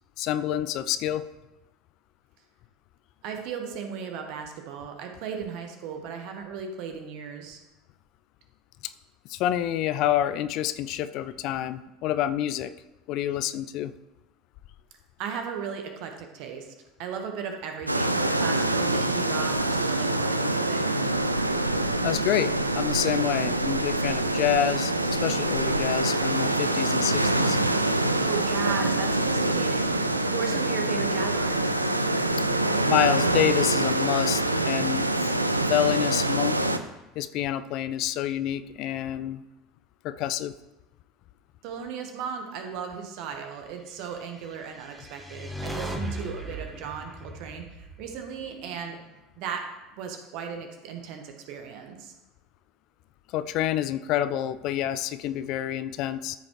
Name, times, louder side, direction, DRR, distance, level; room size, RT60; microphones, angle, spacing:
voice 1, 0.2-1.3 9.3-12.7 13.1-13.9 22.0-27.6 32.9-35.4 35.7-36.6 37.2-39.4 40.0-40.5 53.3-56.4, left 12 dB, 50° left, 13 dB, 0.3 m, -28 dB
voice 2, 3.2-7.6 15.2-16.7 17.0-20.8 28.2-31.9 41.6-49.0 49.4-52.1, right 6 dB, 55° right, 4 dB, 1.3 m, -36 dB
sound 1, 17.9-36.8, right 2 dB, 90° right, 0.4 m, -25 dB
sound 2, 44.6-48.9, right 1 dB, 10° right, 1.2 m, -38 dB
13.5 x 5.3 x 3.2 m, 1.0 s
figure-of-eight pair, 70°, 0 cm